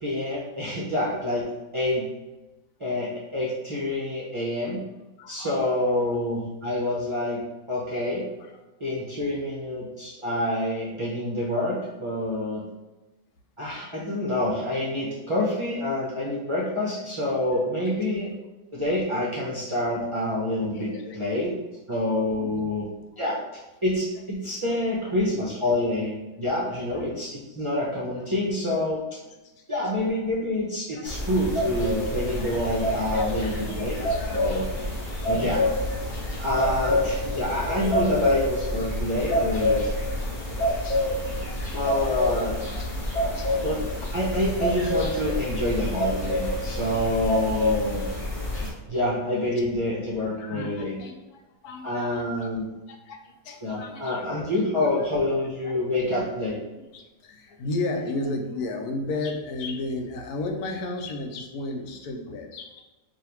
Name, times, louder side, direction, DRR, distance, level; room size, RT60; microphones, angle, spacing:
voice 1, 0.0-2.1 2.8-4.8 5.3-7.4 7.7-8.2 8.8-12.6 13.6-18.3 18.7-21.5 21.9-22.9 23.2-23.4 23.8-29.0 29.7-34.0 34.3-34.7 35.3-35.6 36.4-39.8 41.7-42.6 43.6-43.8 44.1-48.0 48.9-51.0 51.8-52.7 53.6-56.6, left 1 dB, 35° right, -7 dB, 0.5 m, -27 dB
voice 2, 5.2-6.1 8.4-8.5 16.8-16.9 17.5-17.9 20.7-21.2 22.3-22.6 25.1-25.2 26.8-27.1 28.1-28.2 29.6-29.7 30.9-31.1 32.1-32.8 33.1-35.0 35.3-35.8 36.3-36.9 40.3-41.6 41.9-42.4 42.7-42.9 43.3-43.8 46.7-46.8 48.7-48.8 50.4-52.5 52.9-55.1 55.6-55.7 56.9-62.8, left 2 dB, 80° left, 3 dB, 1.1 m, -36 dB
sound 1, 31.0-48.7, left 1 dB, 35° left, 1.2 m, -27 dB
5.1 x 2.7 x 2.9 m, 1.1 s
omnidirectional pair, 1.6 m